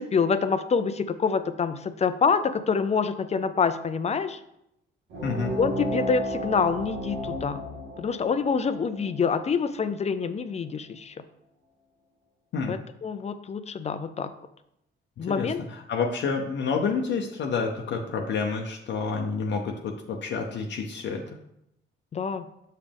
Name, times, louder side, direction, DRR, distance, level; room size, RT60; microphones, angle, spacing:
voice 1, 0.0-4.4 5.6-7.6 8.0-11.2 12.7-14.3 15.2-15.6 22.1-22.4, left 5 dB, 35° left, 11 dB, 0.5 m, -26 dB
sound 1, 5.1-10.2, equal, 80° right, 1.7 m, -34 dB
voice 2, 5.2-5.5 12.5-12.8 15.2-21.2, left 5 dB, 65° left, 1 dB, 0.7 m, -29 dB
6.6 x 5.2 x 3.5 m, 0.81 s
cardioid pair, 90°, 20 cm